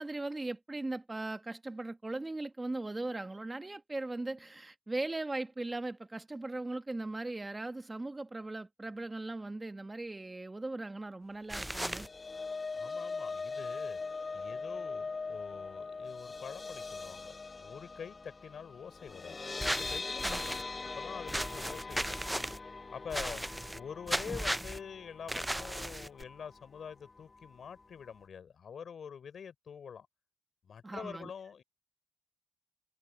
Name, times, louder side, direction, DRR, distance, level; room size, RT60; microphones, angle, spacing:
voice 1, 0.0-12.1 20.2-20.4 30.8-31.3, right 2 dB, 25° right, 1.3 m, -39 dB
sound 1, 11.5-12.1 19.6-20.6 21.3-22.6 23.1-23.8 24.1-24.8 25.3-26.2, right 1 dB, 10° right, 0.3 m, -35 dB
sound 2, 11.7-25.9 26.3-26.5 26.8-26.9, left 4 dB, 40° left, 1.1 m, -41 dB
voice 2, 12.7-14.0 14.3-22.4 22.9-30.1 30.6-31.6, left 7 dB, 75° left, 3.7 m, -46 dB
cardioid pair, 60°, 0 cm